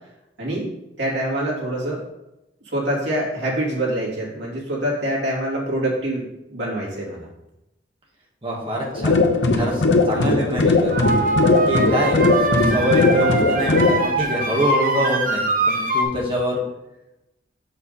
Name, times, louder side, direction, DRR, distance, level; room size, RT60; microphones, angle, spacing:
voice 1, 0.4-0.7 1.0-2.0 2.7-7.3 11.8-12.0, right 1 dB, 75° right, -5 dB, 2.8 m, -25 dB
voice 2, 8.4-9.2 9.6-11.1 11.6-16.6, equal, 30° right, -3 dB, 1.8 m, -25 dB
sound 1, 8.9-14.0, left 3 dB, 85° left, 0.9 m, -19 dB
sound 2, 10.9-16.0, right 2 dB, 50° right, 1.0 m, -22 dB
7.0 x 5.7 x 4.2 m, 0.91 s
head